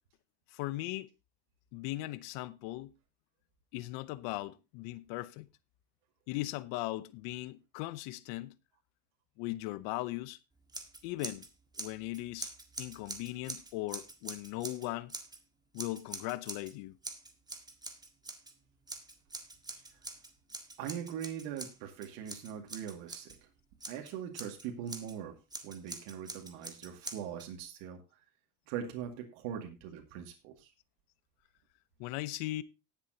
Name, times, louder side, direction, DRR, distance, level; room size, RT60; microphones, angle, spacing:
voice 1, 0.5-1.1 1.7-2.9 3.7-5.5 6.3-8.6 9.4-10.4 11.0-11.5 11.8-12.5 12.8-15.1 15.7-16.9 32.0-32.6, left 18 dB, 70° left, 0.9 m, -38 dB
Scissors, 10.7-11.5 11.7-15.4 15.8-16.7 17.0-18.5 18.9-23.4 23.8-25.1 25.5-27.5, right 2 dB, 10° right, 1.6 m, -45 dB
voice 2, 20.8-23.3 23.9-25.3 25.6-28.0 28.7-30.7, right 9 dB, 75° right, 2.3 m, -41 dB
18.5 x 7.3 x 2.8 m
cardioid pair, 130°, 44 cm